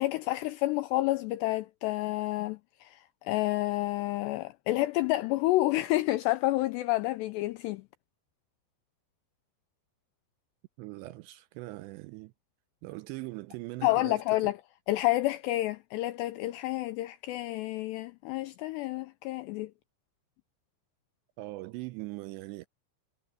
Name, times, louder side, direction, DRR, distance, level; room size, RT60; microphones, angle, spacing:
voice 1, 0.0-7.8 13.8-14.6 14.9-19.7, left 18 dB, 85° left, 2.4 m, -29 dB
voice 2, 10.8-12.3 12.8-14.2 21.4-22.7, right 20 dB, 85° right, 2.6 m, -41 dB
omnidirectional pair, 5.5 m